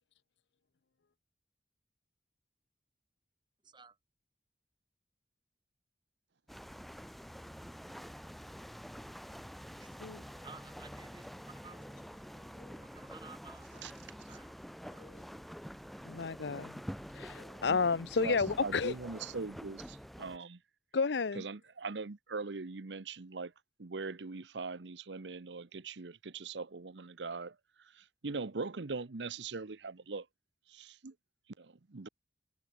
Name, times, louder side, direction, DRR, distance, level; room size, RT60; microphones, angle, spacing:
voice 1, 3.6-4.0 9.8-10.0 10.4-11.8 12.3-14.5 14.9-15.1, right 5 dB, 25° right, 2.5 m, -56 dB
sound 1, 6.5-20.4, equal, ahead, 0.8 m, -47 dB
voice 2, 16.0-16.8 17.1-18.9 20.9-21.4, left 5 dB, 80° left, 0.7 m, -32 dB
voice 3, 17.7-20.6 21.3-23.5 23.8-30.3 30.7-31.1 31.6-32.1, right 4 dB, 90° right, 0.9 m, -41 dB
head